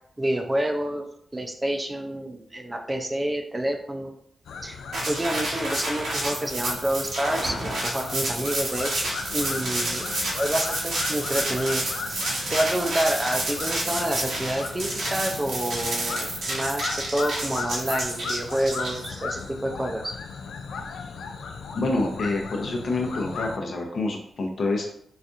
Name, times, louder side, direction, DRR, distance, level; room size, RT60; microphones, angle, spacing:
voice 1, 0.2-1.1 1.3-4.1 4.6-4.8 5.1-10.0 10.3-11.8 12.1-12.2 12.5-20.1, right 1 dB, 20° right, 3 dB, 0.5 m, -28 dB
sound 1, 4.5-23.6, left 4 dB, 90° left, 0.3 m, -36 dB
sound 2, 4.9-19.4, right 1 dB, 85° right, 1.0 m, -30 dB
voice 2, 21.7-24.8, left 2 dB, 65° left, 1 dB, 0.7 m, -27 dB
4.1 x 2.4 x 2.5 m, 0.68 s
cardioid pair, 65°, 0 cm